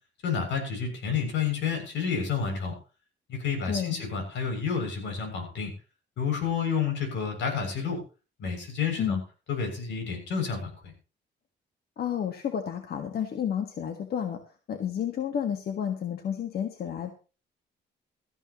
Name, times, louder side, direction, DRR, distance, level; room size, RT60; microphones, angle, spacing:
voice 1, 0.2-2.7 3.3-5.7 6.2-8.0 8.4-9.2 9.5-10.9, left 6 dB, 80° left, 4 dB, 6.9 m, -30 dB
voice 2, 3.6-4.0 9.0-9.2 12.0-14.4 14.7-17.1, left 8 dB, 60° left, 5 dB, 1.6 m, -31 dB
17.5 x 14.5 x 3.0 m, 0.35 s
cardioid pair, 160°, 19 cm